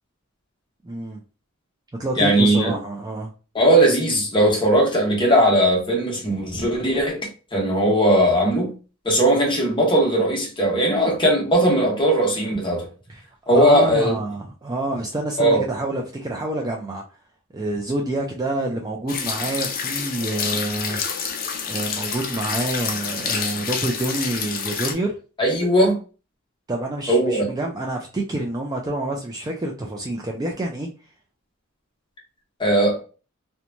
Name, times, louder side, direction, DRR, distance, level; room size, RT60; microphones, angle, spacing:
voice 1, 0.8-1.2 2.0-3.3 13.1-13.2 13.5-17.0 17.5-21.0 21.7-25.2 26.7-30.9, right 2 dB, 20° right, 0.4 m, -27 dB
voice 2, 2.2-2.8 3.5-8.7 9.0-12.9 13.5-14.2 15.4-15.6 25.4-26.0 27.1-27.4 32.6-33.0, right 1 dB, 25° left, 1.0 m, -18 dB
sound 1, 19.1-24.9, left 6 dB, 45° left, 0.4 m, -28 dB
2.9 x 2.2 x 2.5 m
head